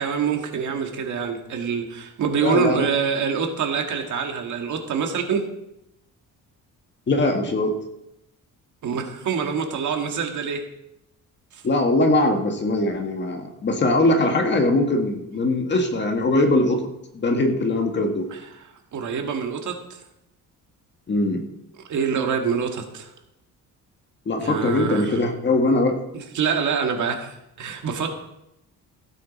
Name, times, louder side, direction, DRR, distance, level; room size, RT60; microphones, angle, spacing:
voice 1, 0.0-5.5 8.8-10.6 11.5-11.6 18.3-20.0 21.9-23.1 24.4-25.2 26.1-28.2, right 6 dB, 60° right, 4 dB, 1.9 m, -26 dB
voice 2, 2.4-2.9 7.1-7.8 11.6-16.8 17.1-18.3 21.1-21.4 24.3-26.0, left 2 dB, 30° left, 4 dB, 1.7 m, -21 dB
16.0 x 9.2 x 4.2 m, 0.84 s
cardioid pair, 145°, 34 cm